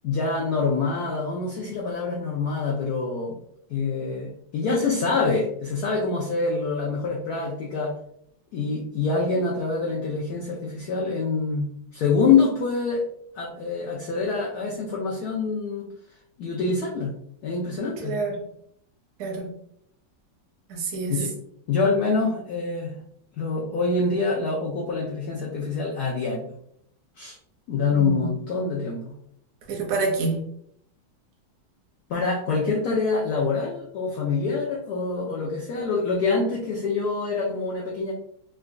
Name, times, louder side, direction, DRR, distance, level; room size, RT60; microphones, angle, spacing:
voice 1, 0.0-3.4 3.7-7.9 8.5-13.0 13.3-15.9 16.4-17.2 17.4-18.2 21.1-21.3 21.7-22.9 23.4-26.5 27.2-27.4 27.7-29.1 32.1-38.1, left 4 dB, 85° left, -2 dB, 0.8 m, -25 dB
voice 2, 18.0-18.3 19.2-19.5 20.7-21.2 27.9-28.3 29.7-30.4, right 3 dB, 60° right, 0 dB, 0.9 m, -27 dB
3.8 x 2.2 x 2.5 m, 0.69 s
omnidirectional pair, 2.2 m